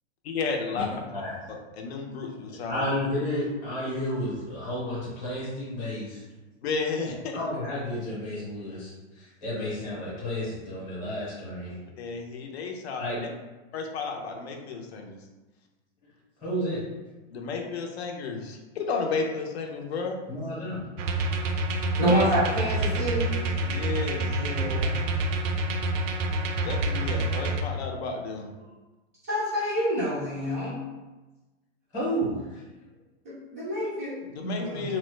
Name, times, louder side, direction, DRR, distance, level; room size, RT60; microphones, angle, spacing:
voice 1, 0.2-0.9 1.7-2.9 6.6-7.4 12.0-13.3 13.7-15.2 17.3-20.2 22.0-22.3 23.6-24.3 26.6-28.5 34.5-35.0, left 4 dB, 60° left, 2 dB, 0.6 m, -32 dB
voice 2, 2.7-6.2 7.3-11.8 13.0-13.2 16.4-16.8 20.3-20.8 31.9-32.6, equal, 10° left, -8 dB, 0.8 m, -31 dB
sound 1, 21.0-27.6, right 2 dB, 80° right, 0.5 m, -27 dB
voice 3, 22.0-23.3 24.3-25.0 29.3-30.8 33.2-35.0, equal, 15° right, -10 dB, 0.3 m, -28 dB
3.0 x 2.1 x 3.1 m, 1.2 s
supercardioid pair, 170°, 37 cm